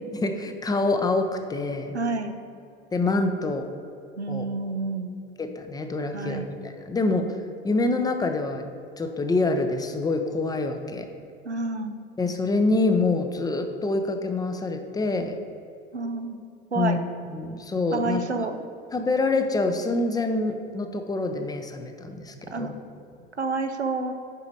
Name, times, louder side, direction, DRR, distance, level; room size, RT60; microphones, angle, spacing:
voice 1, 0.1-1.9 2.9-3.7 4.3-4.5 5.4-7.4 7.6-8.7 9.0-11.1 12.2-15.4 16.8-17.0 17.3-18.2 18.9-22.7, left 3 dB, 10° left, 6 dB, 0.6 m, -26 dB
voice 2, 1.9-2.4 4.2-5.2 6.1-6.5 11.5-12.0 15.9-16.4 16.7-17.0 17.9-18.6 22.5-22.8 23.4-24.1, right 3 dB, 90° right, 7 dB, 0.6 m, -29 dB
8.2 x 5.0 x 5.3 m, 2.5 s
figure-of-eight pair, 80°, 32 cm